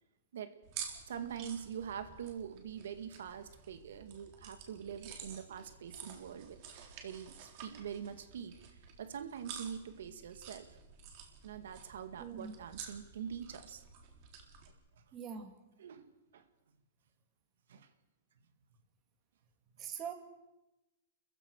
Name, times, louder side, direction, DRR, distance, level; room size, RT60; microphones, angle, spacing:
sound 1, 0.6-14.7, right 7 dB, 45° right, 3.8 m, -51 dB
voice 1, 1.1-6.6 7.0-8.6 9.0-10.7 11.4-13.8 15.8-16.4 17.7-17.9, right 8 dB, 80° right, 9 dB, 1.9 m, -44 dB
voice 2, 12.2-12.5 15.1-15.5 19.8-20.1, right 7 dB, 25° right, 6 dB, 2.7 m, -43 dB
30.0 x 15.0 x 6.5 m, 0.99 s
hypercardioid pair, 155°, 0 cm